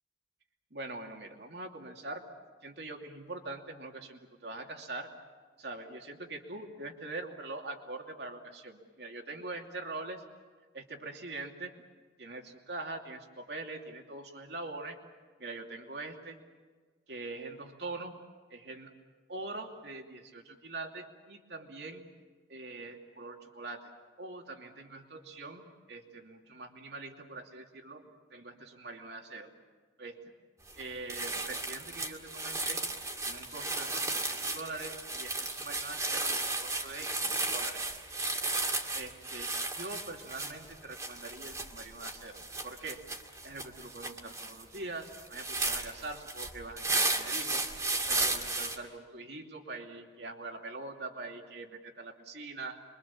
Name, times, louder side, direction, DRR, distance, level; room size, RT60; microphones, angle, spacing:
voice 1, 0.7-2.2 2.6-5.1 5.6-10.2 10.7-11.7 12.2-15.0 15.4-16.4 17.1-18.1 18.5-18.9 19.3-22.0 22.5-23.9 24.2-29.5 30.0-30.2 30.8-32.8 33.2-37.8 38.9-43.0 43.4-47.7 48.1-52.8, right 2 dB, 70° right, 2 dB, 2.7 m, -43 dB
sound 1, 30.7-30.8 31.1-48.8, right 2 dB, 15° right, 2.2 m, -34 dB
27.5 x 24.0 x 7.3 m, 1.5 s
head